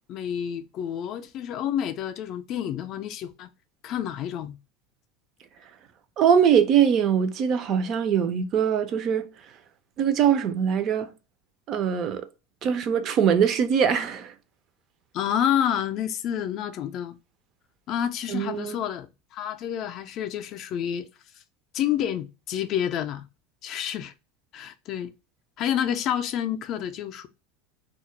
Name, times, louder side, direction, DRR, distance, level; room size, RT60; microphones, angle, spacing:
voice 1, 0.1-3.5 3.8-4.6 15.1-17.2 17.9-21.1 21.7-23.3 23.6-24.1 24.5-25.1 25.6-27.3, left 10 dB, 45° left, 0.3 m, -29 dB
voice 2, 6.2-9.3 10.0-11.1 11.7-12.3 12.6-14.3 18.3-18.8, right 8 dB, 40° right, 0.4 m, -22 dB
2.2 x 2.0 x 2.8 m
supercardioid pair, 140°, 0 cm